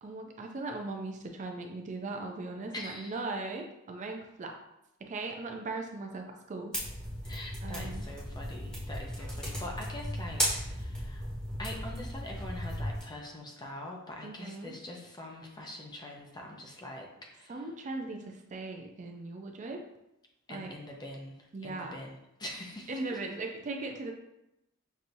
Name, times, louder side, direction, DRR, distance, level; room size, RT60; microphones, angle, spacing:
voice 1, 0.0-4.5 5.0-6.8 7.6-8.1 14.2-14.7 17.5-19.8 20.5-20.7 21.5-22.0 22.9-24.1, right 3 dB, 35° right, 2 dB, 0.4 m, -38 dB
voice 2, 2.7-3.2 7.2-11.2 11.6-17.7 20.5-23.2, left 1 dB, 20° left, 0 dB, 0.6 m, -44 dB
sound 1, 6.7-13.0, equal, 5° left, 1.2 m, -36 dB
6.0 x 2.7 x 2.6 m, 0.87 s
head